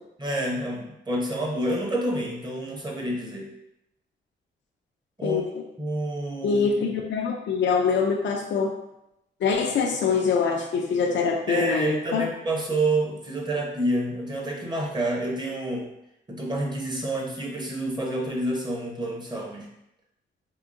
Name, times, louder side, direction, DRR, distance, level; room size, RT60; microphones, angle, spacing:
voice 1, 0.2-3.5 5.2-5.4 5.8-6.6 11.5-15.9 16.3-19.7, right 1 dB, 20° right, -1 dB, 0.8 m, -28 dB
voice 2, 5.2-5.6 6.4-8.7 9.4-12.3, left 5 dB, 65° left, 1 dB, 0.4 m, -24 dB
3.7 x 2.7 x 2.5 m, 0.84 s
cardioid pair, 85°, 20 cm